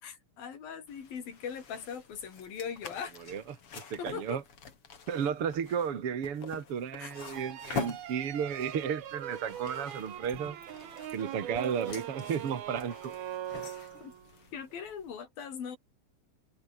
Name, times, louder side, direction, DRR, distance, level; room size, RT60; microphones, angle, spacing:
voice 1, 0.0-3.1 4.0-4.4 7.0-7.1 14.0-14.1 14.5-15.8, left 7 dB, 75° left, 5.4 m, -40 dB
sound 1, 0.9-15.2, left 6 dB, 40° left, 3.3 m, -46 dB
voice 2, 3.3-4.4 5.1-10.6 11.1-13.2, right 7 dB, 45° right, 2.5 m, -33 dB
sound 2, 7.1-14.3, right 11 dB, 85° right, 3.8 m, -41 dB
omnidirectional pair, 4.2 m